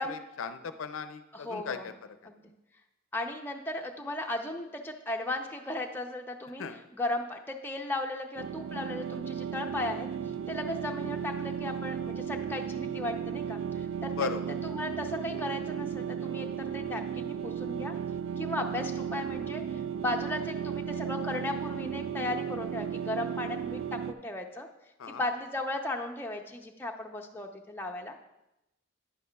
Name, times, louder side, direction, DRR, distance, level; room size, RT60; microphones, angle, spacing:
voice 1, 0.0-1.9 6.6-6.9 14.2-14.5 25.0-25.2, left 5 dB, 85° left, 10 dB, 0.5 m, -37 dB
voice 2, 1.3-1.9 2.2-2.5 3.1-6.6 6.9-10.1 10.5-14.3 14.6-17.9 18.4-24.7 25.1-28.1, left 1 dB, 10° left, 2 dB, 0.5 m, -36 dB
sound 1, 8.3-24.1, right 8 dB, 80° right, 0.3 m, -35 dB
10.0 x 9.3 x 2.3 m, 0.92 s
head